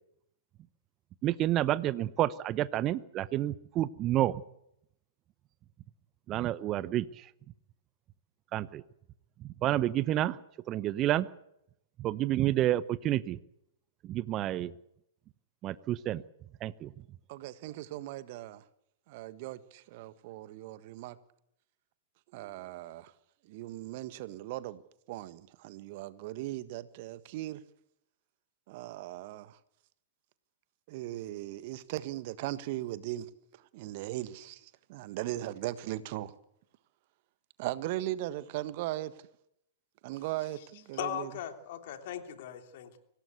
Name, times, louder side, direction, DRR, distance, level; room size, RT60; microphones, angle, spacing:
voice 1, 1.2-4.4 6.3-7.1 8.5-8.8 9.6-10.4 10.7-11.3 12.0-13.4 14.0-14.7 15.6-16.2 16.6-16.9, right 13 dB, 30° right, 0.9 m, -29 dB
voice 2, 17.3-18.6 19.1-21.2 22.3-23.1 23.5-24.8 25.1-27.6 28.7-29.6 30.9-33.3 33.7-36.3 37.6-39.1 40.0-41.3, right 15 dB, 50° right, 1.4 m, -38 dB
voice 3, 40.9-43.0, left 10 dB, 55° left, 3.2 m, -38 dB
25.0 x 18.0 x 8.2 m
figure-of-eight pair, 105°, 0 cm